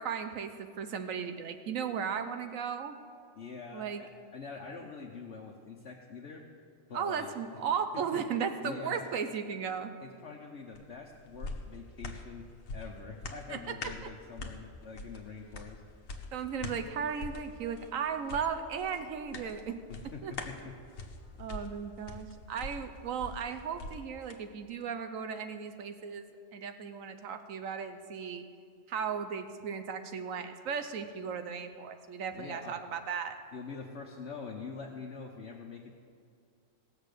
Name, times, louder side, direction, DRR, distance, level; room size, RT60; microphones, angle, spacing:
voice 1, 0.0-3.0 3.7-4.0 6.9-9.9 13.5-13.7 16.3-19.8 20.2-20.3 21.4-28.4 28.9-33.4, right 7 dB, 85° right, 8 dB, 1.2 m, -36 dB
voice 2, 3.4-6.5 6.9-7.3 8.6-9.0 10.0-12.5 12.7-15.8 19.9-20.7 32.3-33.0 33.5-35.9, left 4 dB, 60° left, 0 dB, 1.2 m, -45 dB
sound 1, 10.7-24.4 24.8-24.9, left 3 dB, 80° left, 1.4 m, -45 dB
18.0 x 7.3 x 6.7 m, 2.3 s
omnidirectional pair, 1.4 m